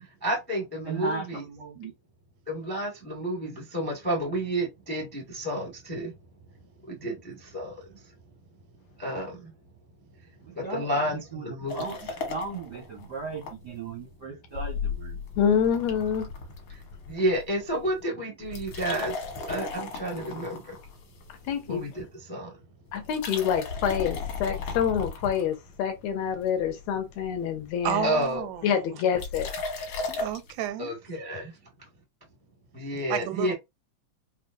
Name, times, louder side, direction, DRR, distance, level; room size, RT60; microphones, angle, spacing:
voice 1, 0.2-1.4 2.5-6.1 7.0-7.8 9.0-9.5 10.6-11.9 17.1-19.1 19.4-20.7 21.7-22.5 28.0-28.5 30.8-31.5 32.7-33.5, right 1 dB, 15° left, 0.4 m, -30 dB
voice 2, 0.8-1.9 7.0-7.1 10.4-11.0 11.3-15.2, right 4 dB, 65° right, 1.0 m, -37 dB
sound 1, 11.7-13.5 13.9-14.0 14.5-17.4 17.7-18.0 18.4-21.8 23.0-25.9 26.4-26.9 27.2-27.3 27.5-28.1 29.2-30.5, left 4 dB, 60° left, 1.9 m, -35 dB
voice 3, 15.4-16.3 21.5-21.8 22.9-28.1 28.6-29.5, left 8 dB, 75° left, 1.7 m, -27 dB
voice 4, 27.8-28.8 30.2-30.9 33.1-33.5, right 11 dB, 90° right, 2.1 m, -31 dB
5.5 x 2.5 x 2.6 m
omnidirectional pair, 3.4 m